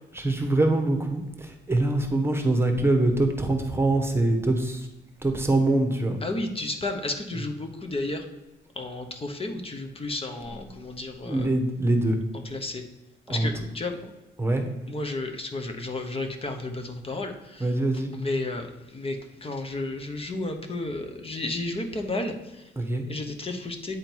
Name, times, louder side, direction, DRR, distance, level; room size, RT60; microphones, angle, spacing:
voice 1, 0.1-4.9 5.2-6.2 10.4-10.8 11.2-12.2 13.3-13.5 14.4-14.7 17.6-18.1 22.8-23.1, right 2 dB, 10° right, 4 dB, 1.2 m, -24 dB
voice 2, 6.2-8.2 8.7-11.5 12.5-12.8 13.3-14.0 14.9-17.6 18.1-22.7 23.1-24.0, left 2 dB, 30° left, 5 dB, 1.0 m, -32 dB
9.2 x 3.8 x 4.5 m, 1.0 s
cardioid pair, 90°, 20 cm